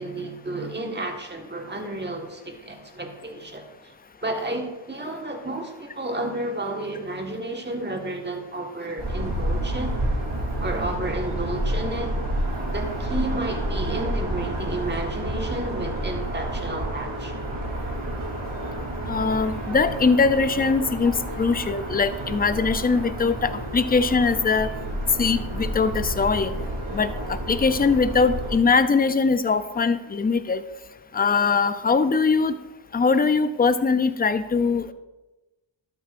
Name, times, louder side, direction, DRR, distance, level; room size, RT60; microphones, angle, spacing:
voice 1, 0.0-3.9 4.2-9.9 10.6-12.1 12.7-17.4, right 2 dB, 20° right, 3 dB, 1.6 m, -31 dB
sound 1, 9.0-28.6, right 1 dB, 70° right, 3.3 m, -30 dB
voice 2, 19.1-24.7 25.2-26.5 26.9-30.6 31.1-32.6 32.9-34.9, left 4 dB, 20° left, 12 dB, 0.5 m, -21 dB
12.0 x 8.4 x 2.6 m, 1.1 s
cardioid pair, 65°, 49 cm